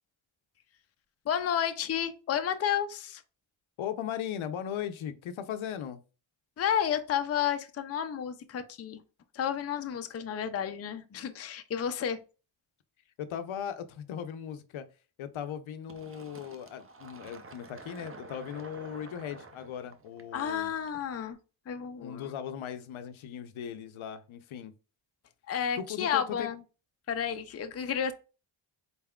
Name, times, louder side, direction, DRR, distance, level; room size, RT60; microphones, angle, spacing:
voice 1, 1.3-3.2 6.6-9.0 9.3-12.2 20.3-21.4 21.7-22.3 25.5-26.6 27.1-28.1, left 9 dB, 30° left, 0.5 m, -31 dB
voice 2, 3.8-6.0 13.2-14.9 15.2-20.7 22.0-24.7 25.8-26.5, left 9 dB, 70° left, 0.6 m, -38 dB
Fill (with liquid), 15.9-21.3, right 3 dB, 25° right, 0.6 m, -50 dB
4.1 x 3.5 x 2.3 m
cardioid pair, 85°, 50 cm